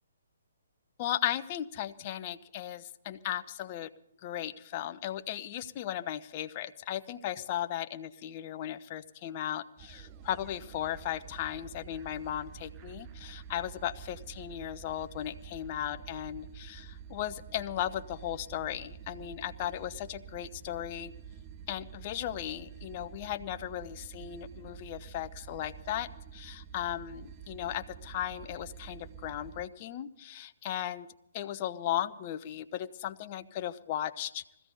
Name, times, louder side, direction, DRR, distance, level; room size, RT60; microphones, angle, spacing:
voice 1, 1.0-3.9 4.2-21.1 21.7-31.1 31.3-34.4, left 12 dB, 35° left, 10 dB, 0.9 m, -36 dB
sound 1, 9.8-29.7, right 8 dB, 25° right, 0.6 m, -48 dB
21.0 x 15.5 x 3.9 m, 0.76 s
hypercardioid pair, 145°, 0 cm